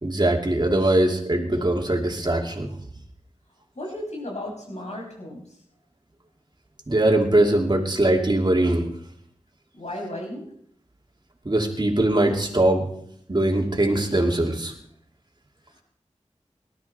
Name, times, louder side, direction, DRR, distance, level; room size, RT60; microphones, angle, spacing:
voice 1, 0.0-2.7 6.9-8.9 11.4-12.9 13.3-14.7, right 1 dB, 40° right, 2 dB, 2.8 m, -21 dB
voice 2, 3.7-5.5 9.7-10.5, left 1 dB, 70° left, 0 dB, 6.5 m, -34 dB
19.0 x 12.5 x 4.4 m, 0.69 s
wide cardioid pair, 50°, 12 cm